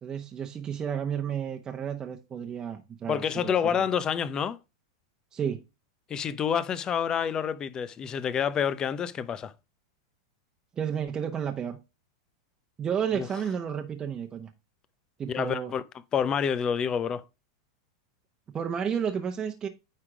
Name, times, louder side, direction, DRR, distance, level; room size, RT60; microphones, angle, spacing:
voice 1, 0.0-3.8 5.3-5.6 10.8-11.8 12.8-14.5 15.2-15.7 18.5-19.7, right 8 dB, 25° right, 1.0 m, -32 dB
voice 2, 3.1-4.6 6.1-9.5 13.2-13.3 15.3-15.8 16.1-17.2, left 7 dB, 25° left, 0.7 m, -28 dB
9.6 x 3.6 x 4.9 m
hypercardioid pair, 110°, 3 cm